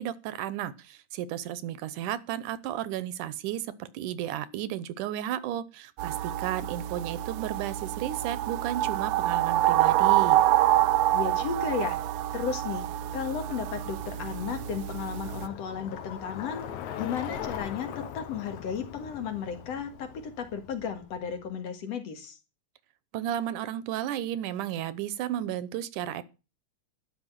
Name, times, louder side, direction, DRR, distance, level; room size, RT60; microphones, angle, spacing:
voice 1, 0.0-10.4 23.1-26.2, right 11 dB, 90° right, 16 dB, 2.4 m, -33 dB
sound 1, 6.0-15.5, right 14 dB, 70° right, 1.6 m, -27 dB
Bicycle, 10.6-21.5, left 9 dB, 75° left, 2.5 m, -42 dB
voice 2, 11.1-12.0 12.3-12.9 13.1-16.7 17.0-22.4, left 6 dB, 60° left, 7 dB, 2.7 m, -34 dB
12.0 x 5.6 x 9.0 m, 0.32 s
omnidirectional pair, 3.5 m